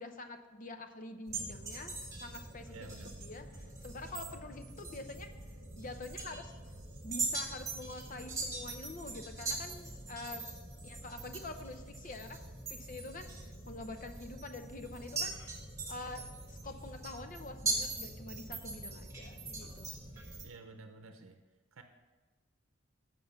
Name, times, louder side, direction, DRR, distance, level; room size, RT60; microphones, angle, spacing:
voice 1, 0.0-1.9 2.2-5.3 5.8-6.5 7.0-10.5 10.8-12.4 12.7-13.3 13.7-15.4 15.9-20.0, left 2 dB, 40° left, 8 dB, 0.6 m, -46 dB
sound 1, 1.3-20.4, right 3 dB, 15° right, 1.6 m, -42 dB
voice 2, 2.7-3.2 20.4-21.4 21.7-21.8, right 3 dB, 80° right, 6 dB, 0.7 m, -51 dB
7.6 x 5.4 x 6.8 m, 1.2 s
head